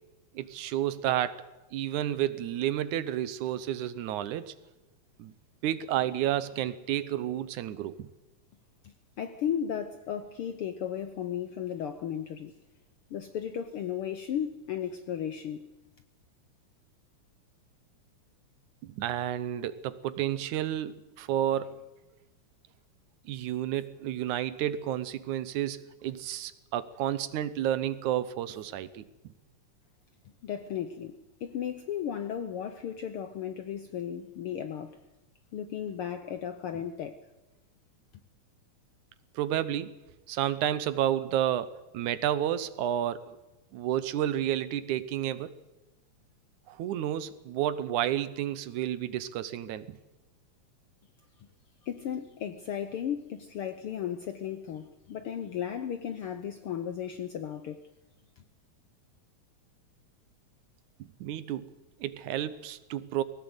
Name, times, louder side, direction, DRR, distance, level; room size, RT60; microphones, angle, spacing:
voice 1, 0.3-4.5 5.2-5.3 5.6-8.1 18.8-21.9 23.3-29.1 39.3-39.9 40.3-43.4 43.7-45.5 46.7-50.0 61.0-61.7 62.0-63.2, right 11 dB, 80° right, 2.3 m, -31 dB
voice 2, 8.8-12.6 13.1-15.7 30.4-35.0 35.5-37.2 51.8-57.9 58.4-58.5, left 9 dB, 70° left, 1.3 m, -35 dB
20.0 x 17.5 x 8.1 m
omnidirectional pair, 3.5 m